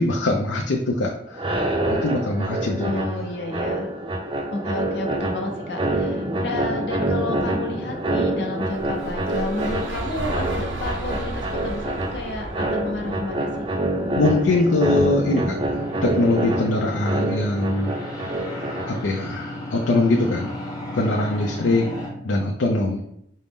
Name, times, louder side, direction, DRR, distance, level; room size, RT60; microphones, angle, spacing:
voice 1, 0.0-1.4 1.9-3.2 14.2-15.6 16.0-17.9 18.9-20.5 20.9-21.9 22.2-23.0, left 2 dB, 85° left, 1 dB, 0.5 m, -22 dB
sound 1, 1.3-19.2, right 1 dB, 25° right, 0.5 m, -27 dB
voice 2, 2.8-3.9 4.5-13.5, left 2 dB, 65° left, 2 dB, 0.8 m, -31 dB
sound 2, 7.5-22.1, left 1 dB, 20° left, 0.8 m, -38 dB
sound 3, 8.7-14.8, right 2 dB, 80° right, 0.5 m, -33 dB
5.3 x 2.0 x 3.5 m, 0.74 s
head